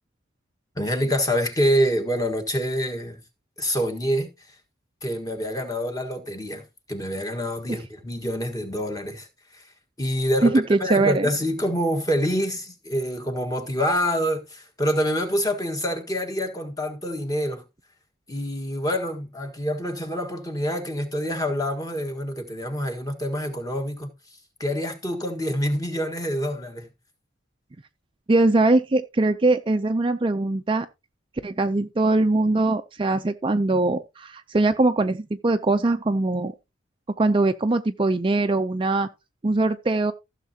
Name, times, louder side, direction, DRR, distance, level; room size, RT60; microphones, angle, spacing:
voice 1, 0.7-3.2 3.6-4.5 5.0-9.7 10.0-17.6 18.3-26.9, equal, 20° left, 1.5 m, -26 dB
voice 2, 10.4-11.3 28.3-30.9 31.4-36.5 37.2-39.1 39.4-40.1, right 2 dB, 25° right, 0.4 m, -21 dB
15.5 x 6.5 x 2.8 m
head